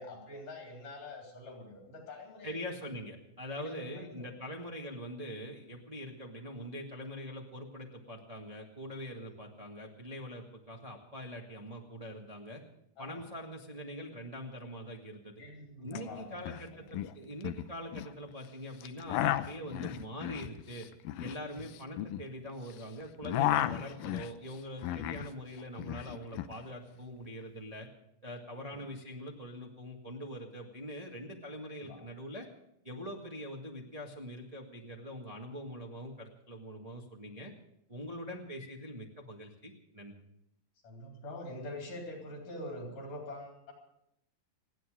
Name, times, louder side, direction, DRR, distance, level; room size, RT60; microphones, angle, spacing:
voice 1, 0.0-2.7 3.6-4.3 9.2-9.4 13.0-13.3 15.4-16.8 21.5-21.7 28.5-28.8 31.6-32.0 40.8-43.7, left 1 dB, 60° left, 0 dB, 5.2 m, -45 dB
voice 2, 2.4-12.6 13.0-15.4 15.8-20.9 21.2-27.9 28.2-32.5 32.8-37.5 37.9-40.1, equal, 30° right, 0 dB, 0.7 m, -43 dB
sound 1, 15.9-16.6 16.9-18.1 18.8-22.8 23.1-25.3 25.6-26.5, left 13 dB, 80° left, 2.4 m, -34 dB
28.5 x 9.8 x 5.0 m, 0.78 s
omnidirectional pair, 4.1 m